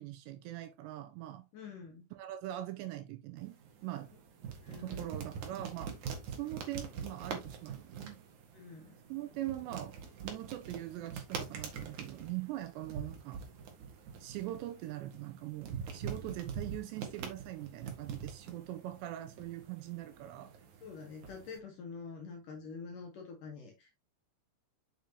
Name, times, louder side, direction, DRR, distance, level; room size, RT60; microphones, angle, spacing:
voice 1, 0.0-1.5 2.1-4.1 4.8-6.0 6.3-8.2 9.1-10.0 10.2-13.4 14.2-20.5, right 14 dB, 85° right, 2.6 m, -42 dB
voice 2, 1.5-2.1 4.6-5.1 8.5-9.0 16.2-16.4 20.8-23.9, left 5 dB, 65° left, 2.2 m, -47 dB
sound 1, 3.4-21.6, right 6 dB, 60° right, 2.2 m, -45 dB
7.4 x 6.9 x 2.9 m
omnidirectional pair, 5.5 m